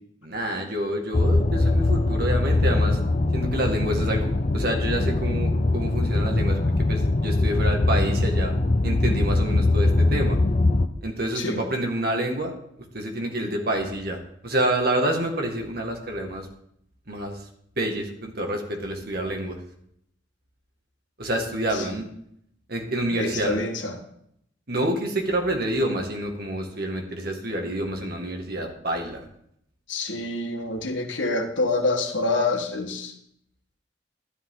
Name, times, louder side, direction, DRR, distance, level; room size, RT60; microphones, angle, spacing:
voice 1, 0.2-3.0 3.3-8.5 8.8-10.4 11.0-12.5 12.9-16.5 17.1-17.4 17.8-19.6 21.2-22.0 22.7-23.6 24.7-29.2, right 1 dB, 55° right, 2 dB, 2.1 m, -28 dB
sound 1, 1.1-10.9, left 2 dB, 40° left, 0.6 m, -22 dB
voice 2, 23.1-24.0 29.9-33.1, left 2 dB, 80° left, 4 dB, 1.6 m, -26 dB
12.5 x 11.0 x 3.9 m, 0.72 s
head